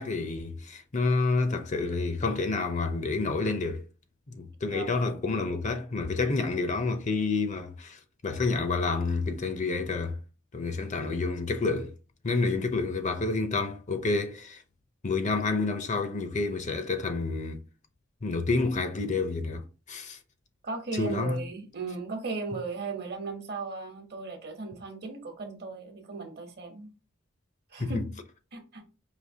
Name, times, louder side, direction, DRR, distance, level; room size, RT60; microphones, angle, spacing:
voice 1, 0.0-3.8 4.3-10.2 10.5-11.9 12.2-14.6 15.0-17.6 18.2-20.2 21.0-21.4 27.8-28.0, left 3 dB, 40° left, 0.6 m, -29 dB
voice 2, 4.7-5.2 20.6-26.9 27.7-28.0 28.5-28.8, right 3 dB, 55° right, 1.0 m, -36 dB
5.0 x 2.8 x 2.7 m
head